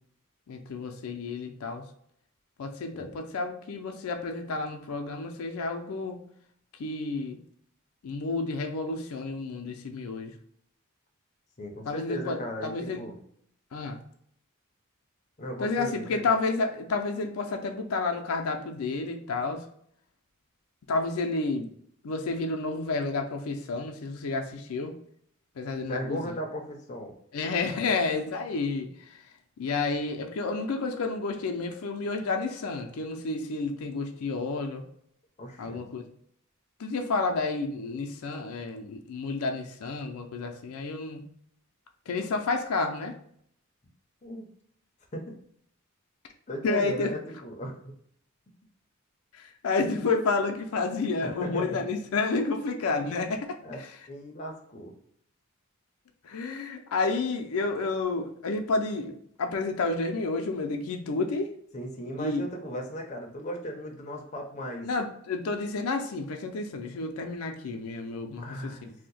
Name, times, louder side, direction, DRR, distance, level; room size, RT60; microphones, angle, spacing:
voice 1, 0.5-1.8 2.6-6.2 6.8-7.4 8.0-10.3 11.8-13.1 13.7-14.0 15.6-19.6 20.9-21.7 22.0-24.9 25.6-26.2 27.3-28.9 29.6-34.8 35.6-36.0 36.8-41.2 42.1-43.1 46.6-47.1 49.3-53.5 53.8-53.9 56.2-61.5 62.2-62.4 64.8-68.9, left 3 dB, 90° left, 4 dB, 0.4 m, -30 dB
voice 2, 11.6-13.2 15.4-16.3 25.9-27.1 35.4-35.8 44.2-44.5 45.1-45.3 46.5-47.9 51.2-51.8 53.6-53.8 54.1-54.9 61.7-64.9 68.4-68.9, equal, 35° left, 1 dB, 0.5 m, -36 dB
2.7 x 2.1 x 3.9 m, 0.66 s
head